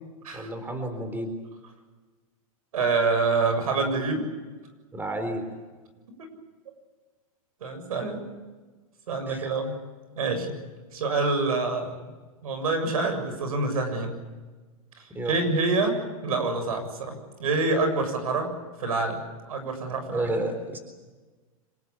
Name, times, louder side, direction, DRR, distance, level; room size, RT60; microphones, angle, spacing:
voice 1, 0.3-1.3 4.9-5.4 9.3-9.5 15.1-15.4 20.1-20.8, right 1 dB, 10° right, 7 dB, 4.0 m, -31 dB
voice 2, 2.7-4.3 7.6-8.2 9.1-9.8 10.2-10.5 10.9-11.9 12.4-14.1 15.3-16.0 16.2-17.1 17.4-18.5 18.8-19.2 19.5-20.2, right 3 dB, 80° right, 7 dB, 7.2 m, -26 dB
26.0 x 21.0 x 8.4 m, 1.3 s
hypercardioid pair, 130°, 18 cm